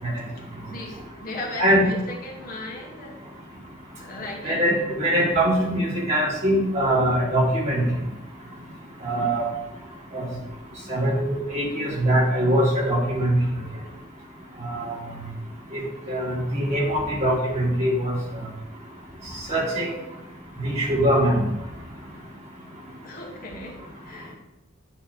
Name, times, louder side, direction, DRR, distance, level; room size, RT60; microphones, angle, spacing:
voice 1, 0.2-3.3 4.0-4.9 23.0-24.3, left 2 dB, 45° left, -1 dB, 1.4 m, -37 dB
voice 2, 4.4-7.8 9.0-9.5 10.1-10.2 10.9-13.3 14.6-15.0 15.7-15.8 16.1-18.2 19.5-19.9 20.6-21.4, right 1 dB, 35° right, -5 dB, 2.3 m, -22 dB
9.0 x 3.2 x 6.1 m, 0.96 s
head